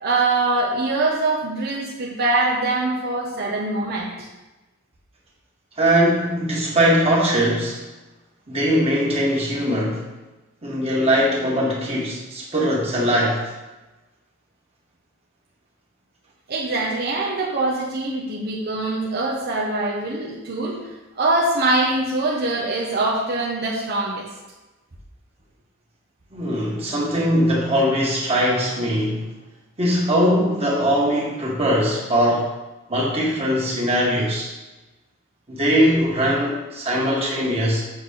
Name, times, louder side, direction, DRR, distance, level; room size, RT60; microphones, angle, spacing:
voice 1, 0.0-4.3 16.5-20.8 21.1-24.3, right 2 dB, 55° right, -3 dB, 1.2 m, -23 dB
voice 2, 5.8-7.8 8.5-10.1 10.6-13.4 26.3-29.3 29.8-32.5 32.9-34.5 35.5-37.8, equal, 30° right, -4 dB, 2.1 m, -21 dB
7.8 x 4.0 x 6.7 m, 1.1 s
head